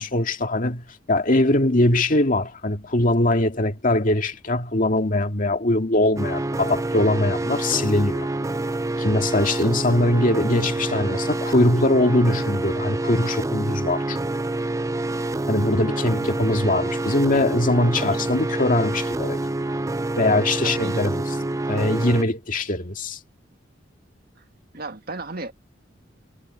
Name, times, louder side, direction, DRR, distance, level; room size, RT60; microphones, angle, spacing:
voice 1, 0.0-8.3 9.0-14.2 15.5-19.4 20.2-21.2 21.7-23.2, left 1 dB, 45° left, 2.1 m, -21 dB
sound 1, 6.2-22.2, right 2 dB, 15° right, 0.5 m, -27 dB
voice 2, 17.9-18.3 20.6-21.0 24.7-25.5, right 2 dB, 55° right, 1.9 m, -35 dB
head